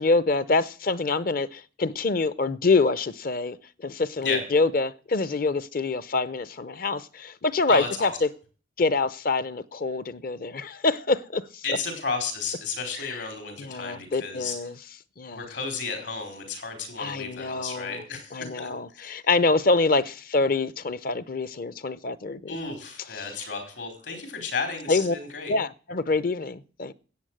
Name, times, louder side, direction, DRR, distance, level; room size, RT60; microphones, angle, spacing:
voice 1, 0.0-8.3 8.8-11.8 13.0-13.2 13.6-14.8 15.2-15.5 17.0-18.0 18.3-22.6 23.1-23.3 24.9-25.1 25.5-26.9, left 3 dB, 50° left, 0.7 m, -26 dB
voice 2, 7.7-8.1 11.6-14.5 15.3-19.1 22.5-25.5, left 4 dB, 75° left, 4.9 m, -33 dB
14.0 x 8.6 x 7.7 m
head